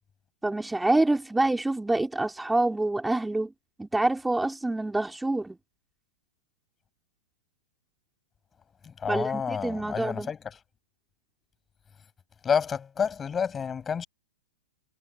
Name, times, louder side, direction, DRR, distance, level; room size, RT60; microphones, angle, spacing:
voice 1, 0.4-3.5 3.8-5.6 9.1-10.3, right 2 dB, 5° right, 4.0 m, -26 dB
voice 2, 8.8-10.6 12.4-14.1, left 7 dB, 20° left, 5.7 m, -29 dB
hypercardioid pair, 120°, 0 cm